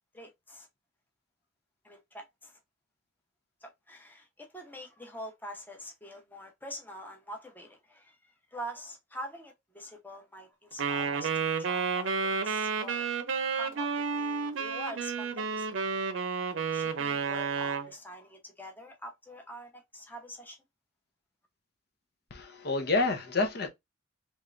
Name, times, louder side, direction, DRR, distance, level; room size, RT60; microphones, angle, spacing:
voice 1, 0.1-0.7 1.8-2.6 3.6-8.2 8.5-13.1 13.5-15.8 16.7-20.6, equal, 10° left, 0.8 m, -45 dB
Wind instrument woodwind instrument, 10.8-17.9, right 5 dB, 85° right, 0.6 m, -31 dB
voice 2, 22.3-23.7, left 3 dB, 55° left, 0.8 m, -28 dB
3.6 x 3.1 x 2.5 m
head